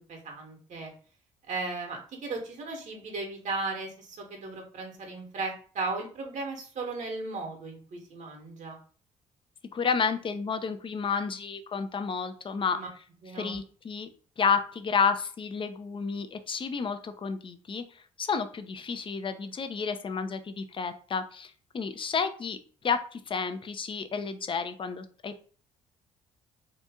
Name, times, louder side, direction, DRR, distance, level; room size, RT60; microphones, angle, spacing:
voice 1, 0.1-0.9 1.5-8.8 12.7-12.9 13.2-13.6, right 3 dB, 55° right, 2 dB, 1.1 m, -36 dB
voice 2, 9.7-12.8 13.4-14.1 14.4-17.8 18.2-22.6 22.8-25.4, left 5 dB, 35° left, 9 dB, 0.5 m, -31 dB
2.8 x 2.5 x 3.5 m, 0.42 s
hypercardioid pair, 55°, 15 cm